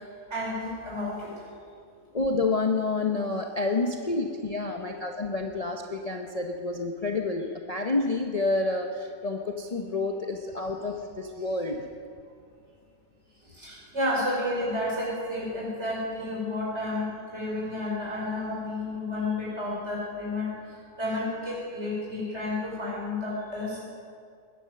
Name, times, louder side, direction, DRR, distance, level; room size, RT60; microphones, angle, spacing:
voice 1, 0.3-1.3 4.3-5.0 13.4-23.8, left 1 dB, 50° right, -5 dB, 5.6 m, -31 dB
voice 2, 2.1-11.9, left 3 dB, 30° left, 2 dB, 0.8 m, -29 dB
20.5 x 10.5 x 6.7 m, 2.3 s
omnidirectional pair, 1.5 m